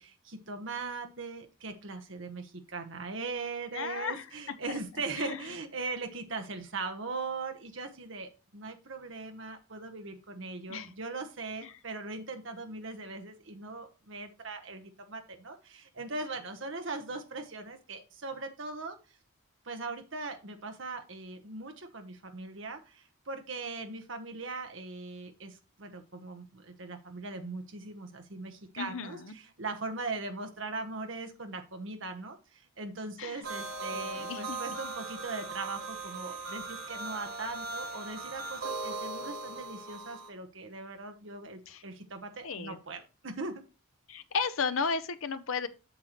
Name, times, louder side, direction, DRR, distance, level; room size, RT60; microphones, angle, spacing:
voice 1, 0.0-19.0 19.6-43.5, right 3 dB, 60° right, 1.1 m, -40 dB
voice 2, 3.7-4.3 4.7-4.8 5.2-5.4 10.7-10.9 11.6-11.7 28.8-29.3 33.2-33.4 33.9-34.8 41.7-41.8 42.4-42.8 44.1-45.7, left 5 dB, 70° left, 0.7 m, -34 dB
sound 1, 33.4-40.3, right 3 dB, 90° right, 2.1 m, -39 dB
7.9 x 6.6 x 3.0 m
head